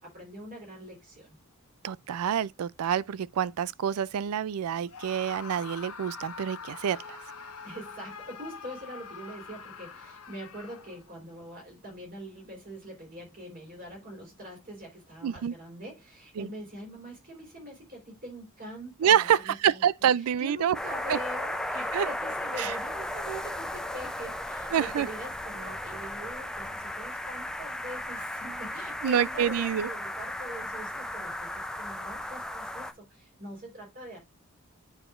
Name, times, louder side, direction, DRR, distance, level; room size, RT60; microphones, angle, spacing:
voice 1, 0.0-1.4 7.6-19.8 20.4-34.2, right 1 dB, 40° right, 3.9 m, -43 dB
voice 2, 1.8-7.2 15.2-15.5 16.4-16.5 19.0-20.8 21.1-21.2 21.9-22.1 22.6-22.8 24.7-25.1 29.0-29.9, right 9 dB, 85° right, 0.4 m, -27 dB
Screaming, 4.9-11.1, left 5 dB, 90° left, 1.0 m, -44 dB
sound 1, 20.7-32.9, left 1 dB, 5° left, 0.4 m, -35 dB
8.9 x 4.9 x 2.4 m
head